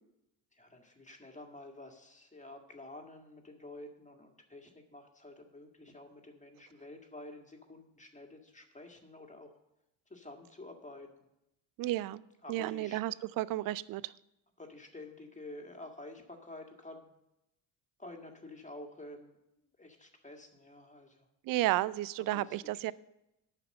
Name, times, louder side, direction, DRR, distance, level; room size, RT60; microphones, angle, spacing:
voice 1, 0.5-9.5 10.1-11.3 12.4-13.0 14.6-17.1 18.0-21.3 22.3-22.6, left 2 dB, 15° left, 3 dB, 1.9 m, -50 dB
voice 2, 11.8-12.2 12.5-14.1 21.4-22.9, right 15 dB, 45° right, 20 dB, 0.4 m, -32 dB
9.1 x 5.8 x 7.7 m, 0.88 s
supercardioid pair, 70°, 47 cm